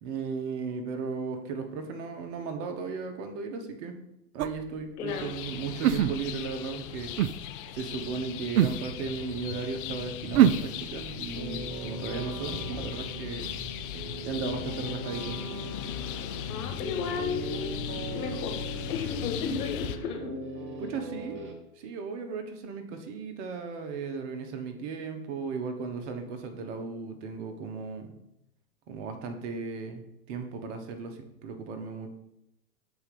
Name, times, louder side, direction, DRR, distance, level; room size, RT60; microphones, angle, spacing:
voice 1, 0.0-3.9 4.3-7.1 7.7-13.6 14.2-15.4 20.8-21.5 21.8-28.1 28.9-30.0 30.3-32.1, right 5 dB, 45° right, 6 dB, 1.2 m, -36 dB
sound 1, 4.4-4.6 5.8-6.5 7.2-7.3 8.6-8.8 10.3-10.7, right 10 dB, 60° right, 0.5 m, -22 dB
voice 2, 5.0-5.3 16.5-17.7 18.1-18.5 18.9-20.3, left 5 dB, 65° left, 3 dB, 2.0 m, -33 dB
sound 2, 5.1-20.0, left 11 dB, 35° left, 0.4 m, -38 dB
sound 3, 11.3-21.5, right 3 dB, 25° right, 1.1 m, -40 dB
6.9 x 4.3 x 5.3 m, 0.83 s
hypercardioid pair, 115°, 48 cm